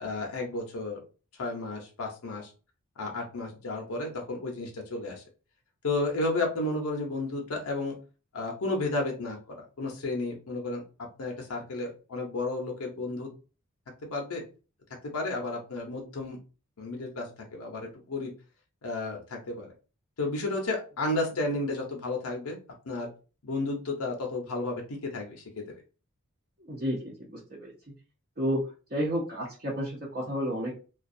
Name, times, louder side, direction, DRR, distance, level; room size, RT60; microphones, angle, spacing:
voice 1, 0.0-1.0 1.4-2.5 3.0-5.2 5.8-7.9 8.3-10.8 11.2-13.3 14.1-14.4 15.1-16.4 16.8-18.3 18.8-19.7 20.2-22.6 22.9-23.1 23.4-25.6, left 2 dB, 85° left, 1 dB, 0.7 m, -32 dB
voice 2, 26.6-27.7 28.4-28.6 28.9-30.7, equal, 40° right, -6 dB, 0.7 m, -31 dB
2.4 x 2.3 x 2.6 m, 0.34 s
head